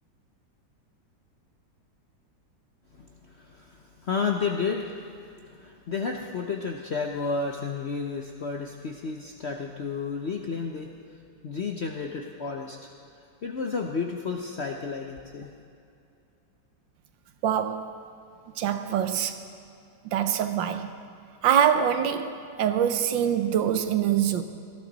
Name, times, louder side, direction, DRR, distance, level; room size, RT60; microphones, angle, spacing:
voice 1, 2.9-5.1 5.5-11.2 11.4-12.9 13.4-15.5, left 5 dB, 60° left, 2 dB, 0.7 m, -32 dB
voice 2, 17.4-17.9 18.6-19.3 20.1-20.9 21.4-24.4, right 9 dB, 85° right, 9 dB, 1.5 m, -24 dB
18.5 x 13.0 x 4.0 m, 2.5 s
omnidirectional pair, 2.0 m